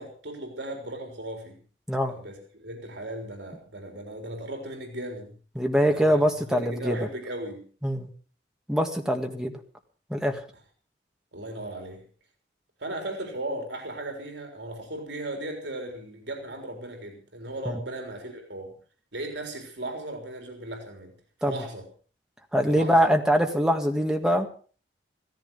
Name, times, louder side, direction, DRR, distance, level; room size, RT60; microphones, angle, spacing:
voice 1, 0.0-1.6 2.1-5.4 5.9-7.7 11.3-12.0 12.8-18.8 19.1-21.1 21.5-21.9 22.7-23.0, right 1 dB, 80° right, 3 dB, 3.9 m, -37 dB
voice 2, 5.6-7.0 7.8-8.1 8.7-9.5 10.1-10.4 17.7-17.8 21.4-21.5 22.5-24.5, equal, 5° right, 3 dB, 2.0 m, -23 dB
16.0 x 14.5 x 5.5 m, 0.41 s
head